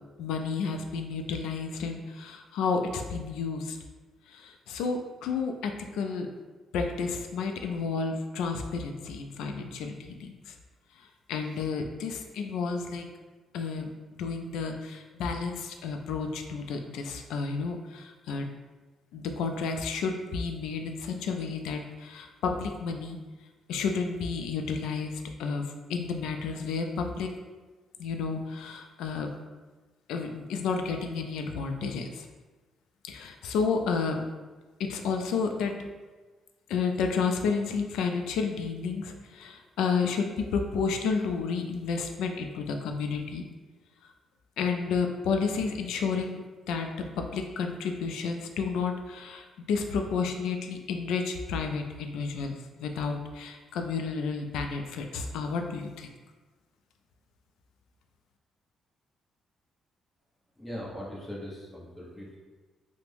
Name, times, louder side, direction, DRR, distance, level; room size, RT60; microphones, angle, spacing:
voice 1, 0.2-3.8 4.3-6.3 6.7-10.5 11.3-13.1 13.5-13.9 14.2-18.5 19.1-23.2 23.7-27.3 28.0-29.3 30.1-32.3 33.1-34.2 34.8-35.8 36.7-43.4 44.6-46.4 46.7-46.9 47.2-56.1, left 5 dB, 90° left, 4 dB, 0.3 m, -31 dB
voice 2, 60.6-62.4, equal, 15° left, -5 dB, 0.9 m, -40 dB
3.3 x 2.1 x 3.3 m, 1.3 s
cardioid pair, 90°, 0 cm